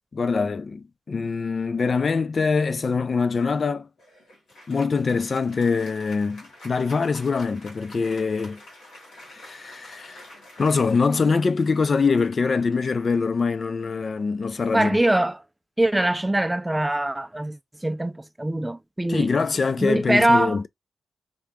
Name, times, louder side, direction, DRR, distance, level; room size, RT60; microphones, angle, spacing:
voice 1, 0.1-3.9 4.7-8.6 9.3-10.2 10.6-15.0 19.1-20.7, left 4 dB, 50° left, 0.4 m, -24 dB
Applause, 4.0-13.8, left 1 dB, 90° left, 2.4 m, -48 dB
voice 2, 14.7-15.4 15.8-19.3 19.8-20.6, right 1 dB, 10° right, 0.4 m, -23 dB
3.6 x 2.8 x 3.5 m
cardioid pair, 80°, 0 cm